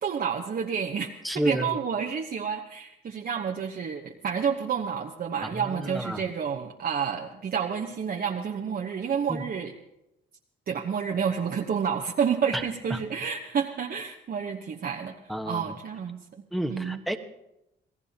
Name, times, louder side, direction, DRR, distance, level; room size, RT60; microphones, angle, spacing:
voice 1, 0.0-1.1 1.4-9.7 10.7-15.2 15.4-16.4 16.7-17.0, right 7 dB, 50° right, 1 dB, 1.1 m, -29 dB
voice 2, 1.2-1.7 5.4-6.2 9.3-9.4 12.5-12.6 12.9-13.0 15.3-15.7 16.5-17.2, equal, ahead, 4 dB, 1.3 m, -30 dB
27.5 x 17.0 x 2.9 m, 0.89 s
cardioid pair, 90°, 20 cm